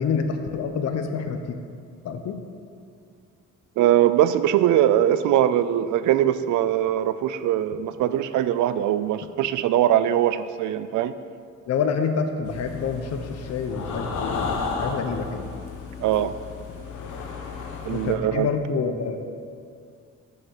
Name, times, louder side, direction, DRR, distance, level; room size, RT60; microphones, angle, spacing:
voice 1, 0.0-1.6 2.0-2.4 11.7-15.4 17.9-19.2, left 5 dB, 60° left, 6 dB, 0.8 m, -27 dB
voice 2, 3.8-11.1 16.0-16.4 17.8-18.5, right 11 dB, 75° right, 13 dB, 0.5 m, -21 dB
sound 1, 12.4-18.1, left 4 dB, 80° left, 1.3 m, -33 dB
6.7 x 6.5 x 7.0 m, 2.3 s
cardioid pair, 90°, 30 cm